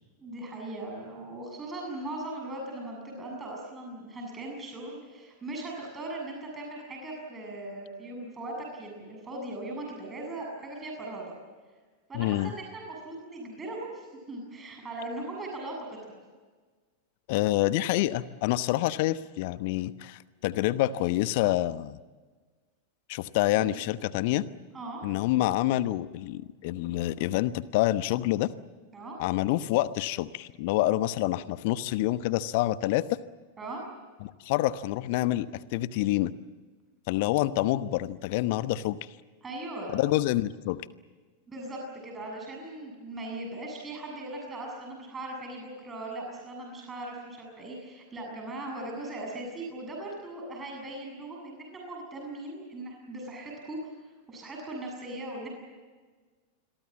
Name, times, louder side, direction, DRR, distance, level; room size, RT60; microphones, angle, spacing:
voice 1, 0.2-11.3 12.1-16.0 23.6-23.8 24.7-25.0 28.9-29.2 33.6-33.8 39.4-39.9 41.5-53.9 54.3-55.5, right 2 dB, 20° right, 0 dB, 7.3 m, -39 dB
voice 2, 12.1-12.5 17.3-22.0 23.1-24.5 25.0-28.5 29.2-33.1 34.2-36.3 37.1-39.0 39.9-40.9, left 15 dB, 50° left, 15 dB, 1.0 m, -27 dB
28.0 x 22.5 x 7.4 m, 1.4 s
figure-of-eight pair, 90°, 0 cm